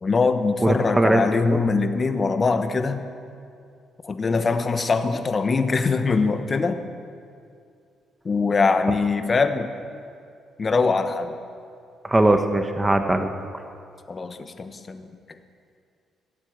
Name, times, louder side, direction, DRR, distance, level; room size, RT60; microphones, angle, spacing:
voice 1, 0.0-3.0 4.0-6.8 8.2-9.7 10.6-11.3 14.1-15.2, left 4 dB, 35° left, 8 dB, 1.1 m, -22 dB
voice 2, 0.6-1.6 12.1-13.3, right 1 dB, 15° right, 6 dB, 1.1 m, -20 dB
17.0 x 8.3 x 8.0 m, 2.4 s
cardioid pair, 90°, 0 cm